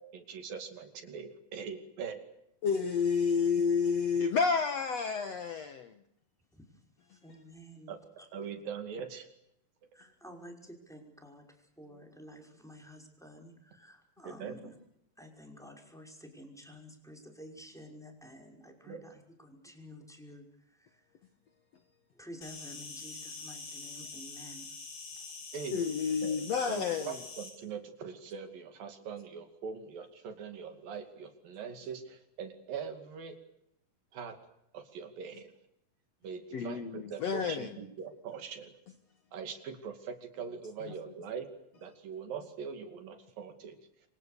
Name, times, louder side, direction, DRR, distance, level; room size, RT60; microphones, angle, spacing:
voice 1, 0.0-2.2 7.9-8.0 8.3-9.3 14.2-14.6 18.9-19.0 25.5-25.8 26.2-26.4 26.7-33.3 34.1-34.4 34.7-35.5 36.2-38.7 39.3-41.5 41.8-43.8, right 6 dB, 75° right, 4.2 m, -42 dB
voice 2, 2.6-6.0 25.7-27.2 36.5-37.7, left 5 dB, 60° left, 2.0 m, -30 dB
voice 3, 6.5-8.3 9.9-14.8 15.2-21.3 22.1-24.7 25.2-25.3, equal, ahead, 5.5 m, -51 dB
Insect, 22.4-27.5, left 3 dB, 90° left, 7.5 m, -45 dB
27.5 x 25.5 x 6.8 m
omnidirectional pair, 4.1 m